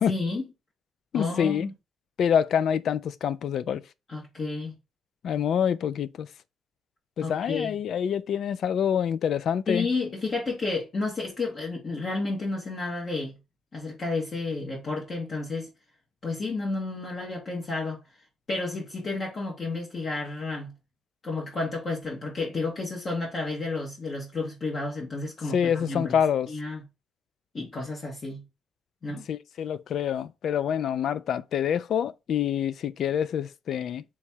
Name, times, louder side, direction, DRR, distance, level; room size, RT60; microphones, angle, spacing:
voice 1, 0.1-0.5 1.1-1.7 4.1-4.7 7.2-7.7 9.7-13.3 13.7-15.7 16.2-18.0 18.5-20.7 21.2-26.2 26.5-26.8 27.5-28.4 29.0-29.2, left 3 dB, 40° left, 1.3 m, -31 dB
voice 2, 1.1-1.7 2.2-3.8 5.2-6.3 7.2-9.9 25.5-26.5 29.3-34.0, left 8 dB, 65° left, 0.3 m, -26 dB
3.5 x 3.0 x 4.4 m
cardioid pair, 105°, 0 cm